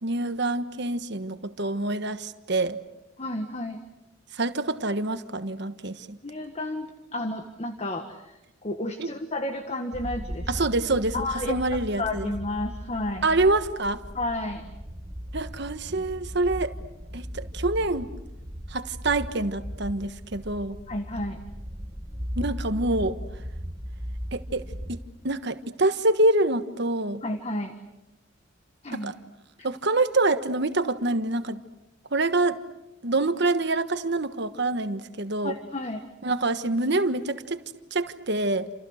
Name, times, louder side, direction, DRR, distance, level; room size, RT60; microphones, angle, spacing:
voice 1, 0.0-2.8 4.4-6.2 9.0-9.1 10.5-12.3 13.2-14.0 15.3-16.7 17.1-18.1 18.7-20.8 22.4-23.2 24.3-24.6 24.9-27.2 28.9-29.1 29.6-31.6 32.1-32.6 33.0-35.5 36.2-38.7, right 2 dB, 55° right, 10 dB, 1.4 m, -26 dB
voice 2, 3.2-3.8 6.2-10.7 11.1-11.6 12.0-13.3 14.1-14.6 20.9-21.4 27.2-27.7 28.8-29.1 35.4-36.0, left 1 dB, 30° left, 7 dB, 1.5 m, -32 dB
sound 1, 9.9-25.0, equal, 20° right, 1.5 m, -37 dB
29.0 x 28.0 x 6.5 m, 0.94 s
head